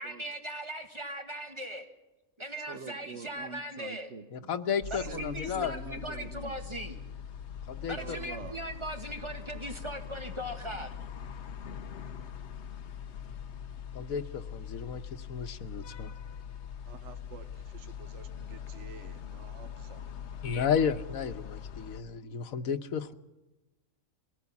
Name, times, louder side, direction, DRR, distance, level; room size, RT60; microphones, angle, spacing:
voice 1, 0.0-1.9 2.4-4.1 4.9-7.0 7.9-10.9, right 1 dB, 20° right, 4 dB, 1.6 m, -39 dB
voice 2, 2.7-4.5 4.9-6.5 7.8-8.6 16.9-20.1, right 5 dB, 60° right, 8 dB, 1.4 m, -46 dB
voice 3, 4.3-5.7 7.7-8.2 13.9-16.1 20.4-23.1, left 7 dB, 85° left, 9 dB, 1.4 m, -33 dB
sound 1, 4.8-22.0, left 8 dB, 60° left, 1.1 m, -42 dB
21.5 x 17.5 x 7.2 m, 1.1 s
omnidirectional pair, 1.4 m